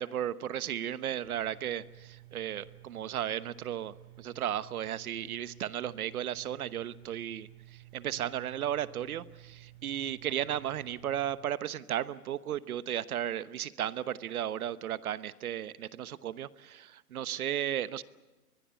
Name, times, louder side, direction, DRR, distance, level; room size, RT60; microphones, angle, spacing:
voice 1, 0.0-18.0, right 11 dB, 70° right, 15 dB, 1.1 m, -35 dB
sound 1, 1.2-11.4, right 16 dB, 45° right, 5.3 m, -54 dB
24.0 x 21.0 x 8.3 m, 1.2 s
hypercardioid pair, 160°, 45 cm